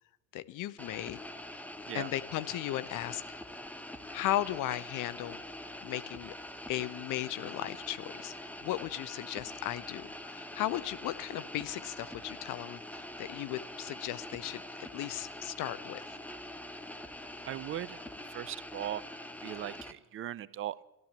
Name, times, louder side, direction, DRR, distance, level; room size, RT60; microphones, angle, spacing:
voice 1, 0.3-1.2 1.9-3.2 4.1-5.4 5.8-6.3 6.7-16.2, left 14 dB, 45° left, 15 dB, 0.9 m, -36 dB
sound 1, 0.8-19.9, left 1 dB, 5° left, 1.2 m, -45 dB
voice 2, 17.5-18.0 18.3-19.0 19.4-20.8, right 11 dB, 30° right, 19 dB, 0.6 m, -38 dB
14.0 x 12.0 x 8.1 m, 1.0 s
hypercardioid pair, 70°, 44 cm